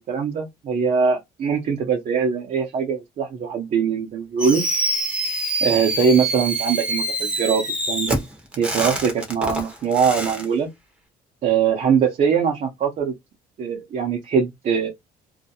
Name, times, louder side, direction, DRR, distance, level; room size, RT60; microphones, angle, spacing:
voice 1, 0.0-4.6 5.6-8.2 8.6-10.7 11.4-13.1 13.6-14.9, right 6 dB, 45° right, 0.7 m, -22 dB
Fireworks, 4.4-10.4, right 1 dB, 5° right, 0.8 m, -25 dB
2.3 x 2.1 x 2.8 m
cardioid pair, 110°, 17 cm